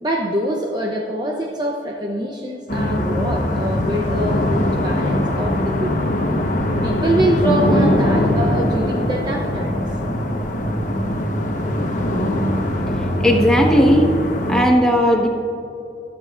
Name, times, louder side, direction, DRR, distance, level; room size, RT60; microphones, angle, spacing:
voice 1, 0.0-6.1 6.8-9.8, right 1 dB, 25° right, 0 dB, 0.7 m, -24 dB
sound 1, 2.7-14.6, left 1 dB, 45° left, 1.1 m, -21 dB
voice 2, 13.2-14.1 14.5-15.3, equal, 5° left, -1 dB, 1.3 m, -15 dB
25.0 x 8.8 x 2.5 m, 2.8 s
head